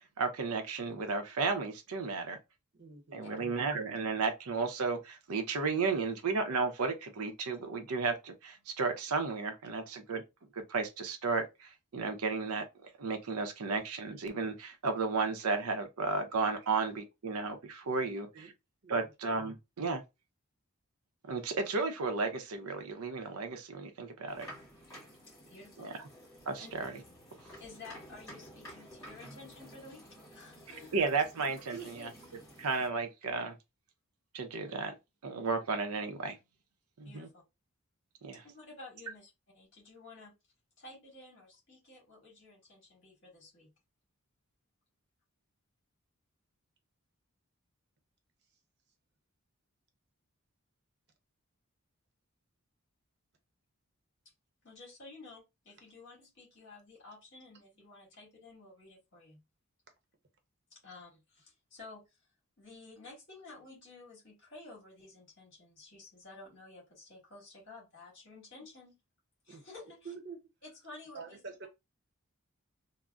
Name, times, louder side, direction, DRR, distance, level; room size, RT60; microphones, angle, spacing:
voice 1, 0.2-2.4 3.1-10.2 10.5-18.5 18.9-20.0 21.3-24.5 25.8-25.9 26.5-26.9 30.9-32.1 32.6-33.5 34.3-35.0 35.2-36.4 37.0-37.3 38.2-38.4, right 4 dB, 85° right, 0.6 m, -33 dB
voice 2, 2.7-3.3 18.3-18.5 18.8-19.1 31.7-32.3 69.5-69.6 70.0-70.4 71.1-71.7, right 5 dB, 50° right, 0.7 m, -47 dB
sound 1, 24.3-32.9, equal, 15° left, 1.7 m, -52 dB
voice 3, 25.3-25.9 26.6-26.7 27.6-31.0 37.0-37.4 38.4-40.3 40.8-43.7 54.6-59.4 60.7-62.0 62.6-69.0 69.4-70.1 70.6-71.7, left 3 dB, 55° left, 1.9 m, -52 dB
3.7 x 2.0 x 2.3 m
head